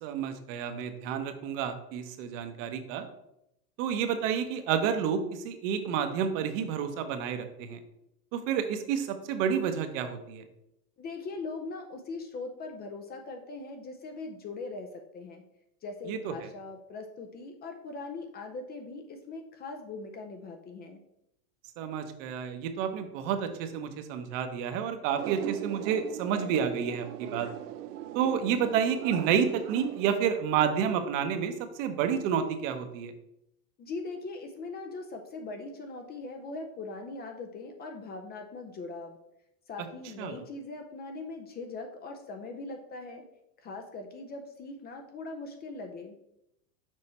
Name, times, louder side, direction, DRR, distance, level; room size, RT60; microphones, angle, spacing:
voice 1, 0.0-3.1 3.8-7.8 8.3-10.4 16.1-16.3 21.8-27.5 28.1-33.1 40.2-40.3, right 7 dB, 55° right, 7 dB, 1.0 m, -30 dB
voice 2, 11.0-14.9 15.1-15.4 15.8-21.0 33.8-39.2 39.7-43.2 43.6-46.2, left 3 dB, 20° left, 4 dB, 0.5 m, -40 dB
sound 1, 25.2-30.2, right 12 dB, 85° right, 0.6 m, -39 dB
6.4 x 4.3 x 4.2 m, 0.81 s
supercardioid pair, 130°, 45 cm